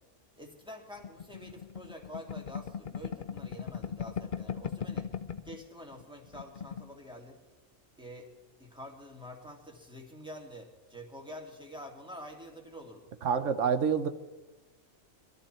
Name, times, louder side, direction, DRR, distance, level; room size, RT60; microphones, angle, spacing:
voice 1, 0.4-5.1 5.4-7.4 8.0-8.3 8.6-13.1, equal, 5° right, 0 dB, 2.4 m, -47 dB
sound 1, 1.0-5.6 5.9-6.0 6.3-6.9, left 7 dB, 45° left, 0.7 m, -38 dB
voice 2, 13.2-14.1, right 6 dB, 65° right, 10 dB, 1.2 m, -27 dB
22.5 x 13.5 x 4.4 m, 1.2 s
omnidirectional pair, 1.4 m